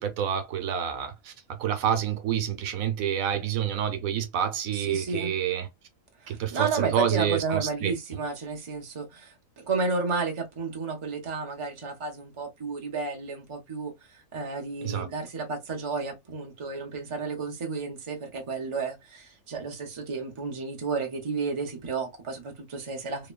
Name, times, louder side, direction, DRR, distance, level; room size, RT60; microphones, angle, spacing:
voice 1, 0.0-5.7 6.3-7.9 14.8-15.1, right 9 dB, 90° right, 1.1 m, -28 dB
voice 2, 4.7-5.3 6.2-23.3, right 4 dB, 30° right, 0.7 m, -32 dB
3.0 x 2.1 x 2.3 m
omnidirectional pair, 1.4 m